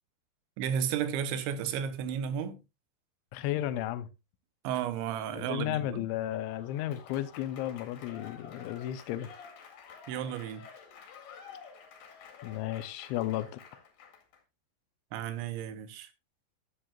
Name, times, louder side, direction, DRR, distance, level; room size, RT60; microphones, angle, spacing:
voice 1, 0.6-2.6 4.6-6.0 10.1-10.7 15.1-16.1, right 8 dB, 80° right, 3.2 m, -33 dB
voice 2, 3.3-4.1 5.3-9.3 12.4-13.5, left 13 dB, 80° left, 3.1 m, -33 dB
Applause / Crowd, 6.2-14.4, left 6 dB, 55° left, 3.4 m, -51 dB
13.0 x 9.1 x 2.4 m
omnidirectional pair, 5.4 m